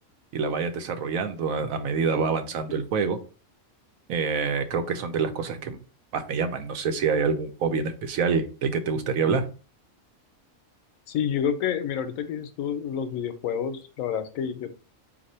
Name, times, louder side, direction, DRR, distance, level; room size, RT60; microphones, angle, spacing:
voice 1, 0.3-3.2 4.1-5.8 6.1-9.5, right 5 dB, 80° right, 8 dB, 1.1 m, -26 dB
voice 2, 11.1-14.7, left 8 dB, 85° left, 10 dB, 1.0 m, -29 dB
4.3 x 2.6 x 4.2 m, 0.35 s
omnidirectional pair, 1.4 m